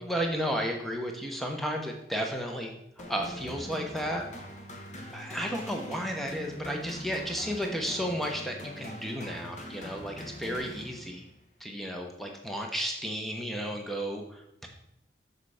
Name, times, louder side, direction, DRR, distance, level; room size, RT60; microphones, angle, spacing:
voice 1, 0.0-2.7 3.1-4.2 5.1-11.2 11.6-14.7, equal, ahead, 2 dB, 0.9 m, -33 dB
sound 1, 3.0-11.3, left 1 dB, 40° left, 1.1 m, -43 dB
6.8 x 6.6 x 4.9 m, 0.79 s
head